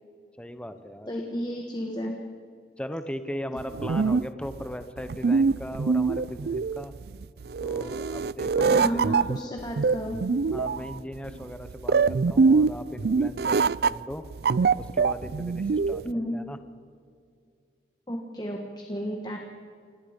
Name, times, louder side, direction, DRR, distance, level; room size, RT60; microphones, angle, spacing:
voice 1, 0.4-1.1 2.8-6.9 7.6-9.1 10.5-14.2 14.8-16.6, equal, 5° left, 10 dB, 0.9 m, -38 dB
voice 2, 1.1-2.1 8.6-10.2 16.0-16.4 18.1-19.4, equal, 25° left, 2 dB, 1.6 m, -32 dB
sound 1, 3.6-16.1, right 4 dB, 60° right, 0.4 m, -24 dB
28.5 x 18.0 x 5.2 m, 2.3 s
head